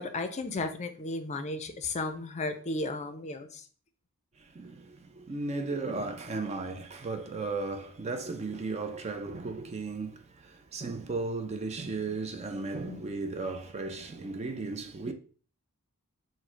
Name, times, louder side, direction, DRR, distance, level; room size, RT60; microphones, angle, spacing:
voice 1, 0.0-3.6 12.9-13.0, left 2 dB, 30° left, 0.5 m, -34 dB
voice 2, 4.4-15.1, right 3 dB, 30° right, 0.4 m, -35 dB
4.7 x 2.1 x 4.3 m
head